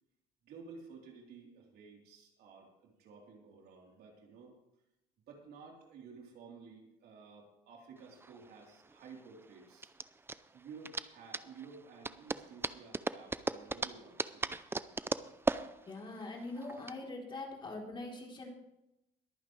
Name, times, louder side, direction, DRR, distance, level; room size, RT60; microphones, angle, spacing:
voice 1, 0.4-4.5 5.3-9.9 10.5-14.6, right 5 dB, 70° right, -1 dB, 3.8 m, -53 dB
sound 1, 8.0-16.9, right 3 dB, 15° right, 0.5 m, -38 dB
voice 2, 15.9-18.5, left 2 dB, 30° left, -1 dB, 3.6 m, -43 dB
22.0 x 8.9 x 3.3 m, 0.87 s
cardioid pair, 110°, 17 cm